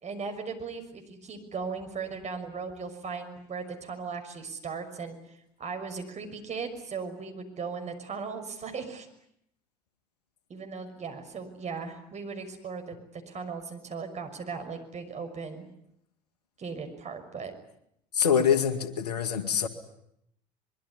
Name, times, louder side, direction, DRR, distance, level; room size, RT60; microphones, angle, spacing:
voice 1, 0.0-9.1 10.5-15.7 16.6-17.5, right 5 dB, 35° right, 6 dB, 6.1 m, -37 dB
voice 2, 18.1-19.7, left 7 dB, 80° left, 11 dB, 2.1 m, -25 dB
24.0 x 23.0 x 9.8 m, 0.75 s
figure-of-eight pair, 60°, 20 cm